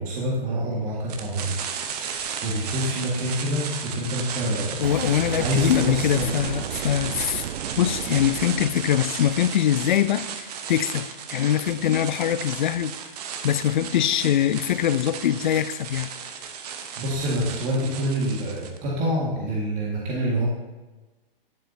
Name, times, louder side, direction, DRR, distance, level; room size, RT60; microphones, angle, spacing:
voice 1, 0.0-1.5 2.0-6.4 17.0-20.5, equal, 25° right, -4 dB, 1.8 m, -27 dB
sound 1, 1.1-18.8, right 7 dB, 45° right, 0.9 m, -35 dB
voice 2, 4.8-7.4 7.8-13.0 13.4-16.1, left 10 dB, 55° left, 15 dB, 0.5 m, -23 dB
Boom, 4.8-9.7, right 9 dB, 75° right, 0.5 m, -33 dB
10.5 x 7.5 x 2.8 m, 1.2 s
hypercardioid pair, 130°, 29 cm